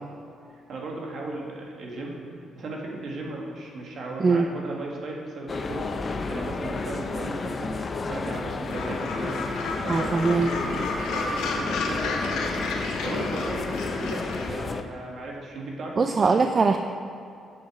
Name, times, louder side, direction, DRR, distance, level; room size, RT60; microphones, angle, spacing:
voice 1, 0.7-7.7 8.1-9.4 9.8-16.5, right 2 dB, 60° right, -1 dB, 1.8 m, -36 dB
sound 1, 5.5-14.8, left 3 dB, 35° left, 0.6 m, -31 dB
Gull seagull, 8.6-14.5, left 3 dB, 85° left, 1.1 m, -32 dB
voice 2, 9.9-10.5 16.0-16.8, right 4 dB, 40° right, 7 dB, 0.4 m, -21 dB
7.7 x 7.2 x 4.9 m, 2.6 s
cardioid pair, 90°, 0 cm